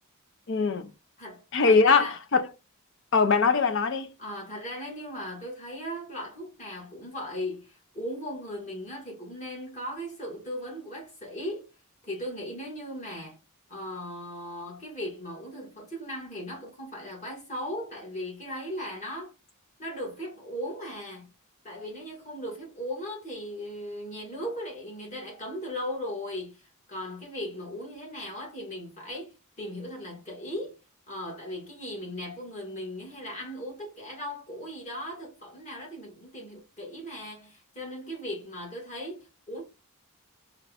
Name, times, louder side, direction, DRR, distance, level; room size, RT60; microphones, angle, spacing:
voice 1, 0.5-0.9 1.5-2.5 3.1-4.1, left 4 dB, 55° left, 0.6 m, -22 dB
voice 2, 1.2-2.2 4.2-11.7 12.0-13.4 13.7-19.3 19.8-21.3 21.6-30.7 31.1-39.6, equal, 35° left, 1.9 m, -38 dB
4.5 x 2.5 x 3.4 m
head